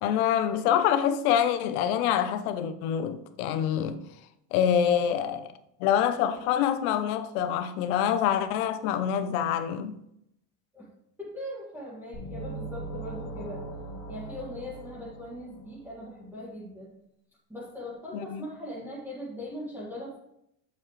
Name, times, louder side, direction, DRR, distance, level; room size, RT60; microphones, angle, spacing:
voice 1, 0.0-4.0 4.5-5.5 5.8-10.0 18.3-18.4, left 9 dB, 85° left, 0.9 m, -26 dB
voice 2, 11.2-13.6 14.1-16.9 17.5-20.2, left 1 dB, 5° right, 1.8 m, -40 dB
sound 1, 12.1-15.9, right 2 dB, 60° left, 2.5 m, -39 dB
7.5 x 7.2 x 3.2 m
cardioid pair, 150°, 42 cm